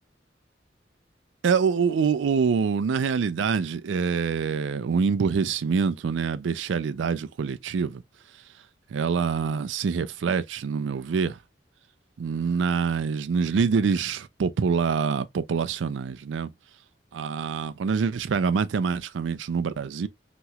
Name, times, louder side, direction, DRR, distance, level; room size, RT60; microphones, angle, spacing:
voice 1, 1.4-8.0 8.9-11.4 12.2-16.5 17.1-20.1, right 5 dB, 85° right, 0.4 m, -25 dB
3.0 x 2.3 x 2.7 m
head